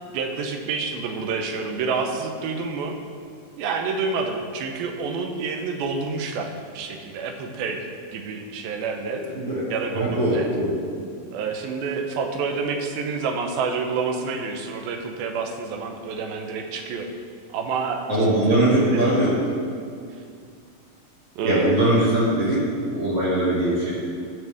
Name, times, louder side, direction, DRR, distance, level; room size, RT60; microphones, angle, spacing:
voice 1, 0.1-3.0 3.6-9.2 9.7-10.5 11.3-17.1 17.5-19.1 20.2-20.3 21.4-22.0, right 4 dB, 85° right, 4 dB, 2.8 m, -28 dB
voice 2, 9.1-9.6 9.9-10.7 18.1-19.4 21.4-22.6 22.9-23.9, right 1 dB, 30° right, -9 dB, 1.8 m, -21 dB
19.0 x 6.4 x 3.5 m, 2.3 s
omnidirectional pair, 4.2 m